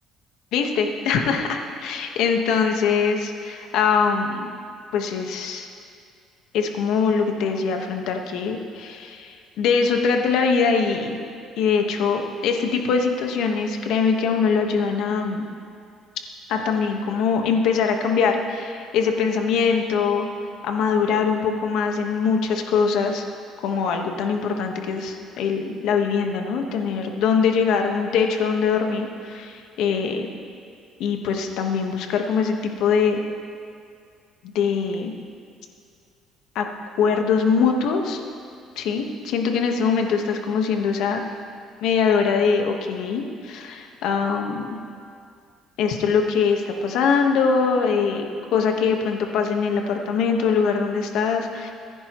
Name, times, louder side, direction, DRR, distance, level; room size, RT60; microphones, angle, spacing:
voice 1, 0.5-4.5 4.9-5.7 6.5-11.2 11.6-15.5 16.5-20.3 20.6-23.2 23.6-30.3 31.0-33.2 34.5-35.1 36.5-36.7 37.0-38.2 38.7-41.2 41.8-44.8 45.8-51.7, left 5 dB, 75° left, 3 dB, 1.4 m, -22 dB
24.5 x 10.5 x 3.1 m, 2.4 s
cardioid pair, 115°, 0 cm